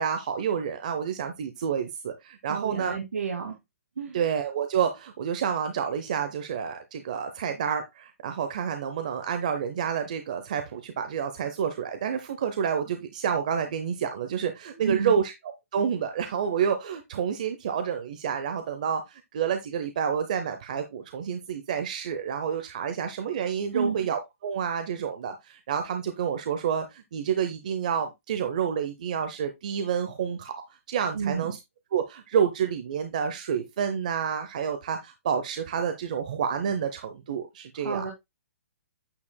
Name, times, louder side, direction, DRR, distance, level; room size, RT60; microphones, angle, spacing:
voice 1, 0.0-2.9 4.1-15.3 15.7-30.5 30.9-31.6 31.9-38.0, right 7 dB, 30° right, 0.7 m, -29 dB
voice 2, 2.5-3.6 4.0-4.2 14.7-15.2 23.7-24.1 31.1-31.6 37.7-38.1, right 6 dB, 90° right, 2.1 m, -31 dB
8.7 x 6.7 x 2.2 m
hypercardioid pair, 180°, 8 cm